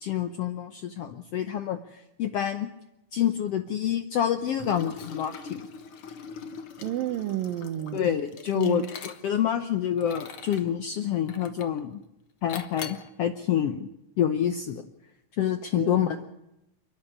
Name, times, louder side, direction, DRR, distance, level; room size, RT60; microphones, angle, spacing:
voice 1, 0.0-2.7 3.1-5.6 7.9-12.0 12.4-13.9 14.2-14.8 15.4-16.3, left 10 dB, 80° left, 1.4 m, -27 dB
Liquid, 4.5-9.5 10.0-10.7 11.3-11.8 12.5-13.1, left 6 dB, 55° left, 1.5 m, -42 dB
voice 2, 6.8-8.1 8.6-8.9 15.7-16.2, right 12 dB, 80° right, 2.7 m, -31 dB
29.5 x 10.5 x 9.8 m
omnidirectional pair, 4.0 m